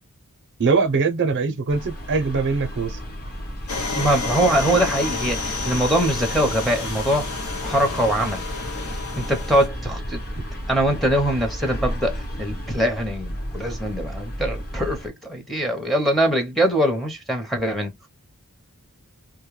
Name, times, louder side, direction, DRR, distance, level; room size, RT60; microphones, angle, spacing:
voice 1, 0.6-3.0, right 4 dB, 55° right, 0.5 m, -22 dB
sound 1, 1.7-15.1, equal, 40° left, 1.1 m, -33 dB
sound 2, 3.7-9.7, left 3 dB, 65° left, 0.8 m, -30 dB
voice 2, 3.9-7.3 7.6-8.4 9.2-10.2 10.7-17.9, right 1 dB, ahead, 0.6 m, -22 dB
2.2 x 2.1 x 3.0 m
head